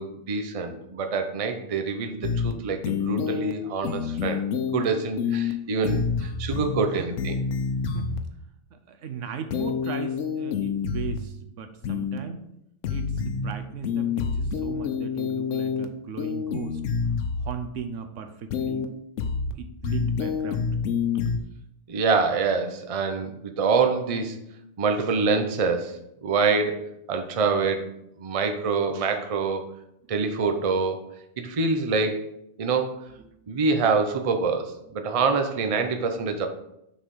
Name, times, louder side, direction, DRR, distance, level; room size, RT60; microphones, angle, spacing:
voice 1, 0.0-4.4 4.7-7.4 21.9-24.4 24.8-27.9 28.2-29.7 30.1-31.0 31.4-32.2 32.6-33.1 33.5-36.5, right 4 dB, 35° right, 6 dB, 0.6 m, -26 dB
sound 1, 2.2-2.5 2.8-3.5 3.8-4.8 5.2-5.5 5.8-6.8 7.2-8.2 9.5-11.2 11.8-12.2 12.8-13.5 13.8-15.8 16.2-17.5 18.5-18.8 19.2-19.5 19.8-21.4, left 6 dB, 75° left, 1.0 m, -27 dB
voice 2, 8.7-12.5 12.9-16.8 17.4-18.9 19.6-20.7 33.2-33.3, right 6 dB, 80° right, 8 dB, 1.1 m, -37 dB
6.3 x 4.1 x 5.4 m, 0.79 s
omnidirectional pair, 1.3 m